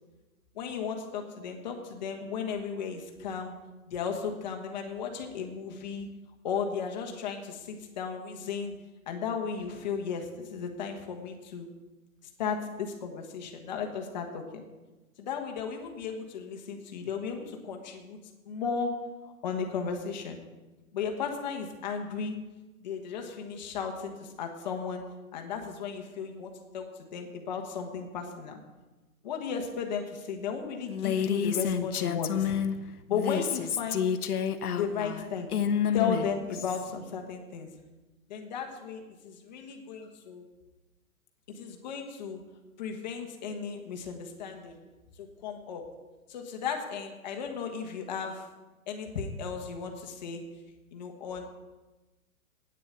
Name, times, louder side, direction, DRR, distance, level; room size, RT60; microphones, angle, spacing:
voice 1, 0.5-3.5 3.9-6.1 6.4-8.7 9.1-11.7 12.4-14.6 15.2-18.2 18.5-18.9 19.2-20.4 20.9-22.4 22.8-25.0 25.3-28.6 29.2-32.5 33.1-34.1 34.7-35.6 35.9-37.7 38.3-40.4 41.5-42.4 42.8-44.8 45.2-45.9 46.3-48.5 48.9-50.4 50.9-51.4, left 6 dB, 30° left, 3 dB, 1.4 m, -35 dB
Female speech woman speaking, 30.9-32.7 33.1-36.9, left 8 dB, 85° left, 1.1 m, -29 dB
9.3 x 8.6 x 8.0 m, 1.2 s
hypercardioid pair, 175°, 44 cm